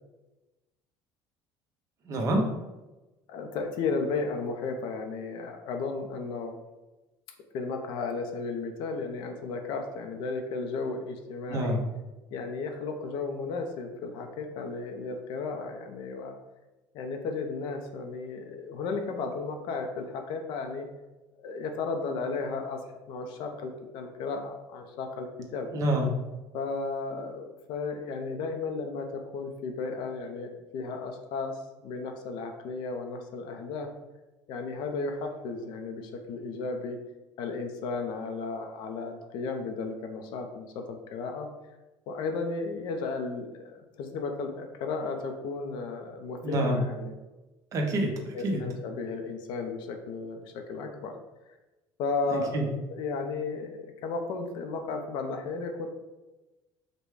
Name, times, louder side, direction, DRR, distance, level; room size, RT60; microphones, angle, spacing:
voice 1, 2.1-2.4 11.5-11.8 25.7-26.1 46.4-46.8 47.7-48.6 52.3-52.6, right 1 dB, 40° right, 2 dB, 0.8 m, -27 dB
voice 2, 3.3-6.5 7.5-11.8 12.3-16.4 16.9-20.9 21.4-25.7 26.5-33.9 34.5-37.0 37.4-41.5 42.1-47.1 48.3-51.1 51.5-51.6 52.0-55.9, left 4 dB, 65° left, 4 dB, 0.6 m, -34 dB
5.1 x 2.2 x 4.7 m, 1.1 s
cardioid pair, 160°, 9 cm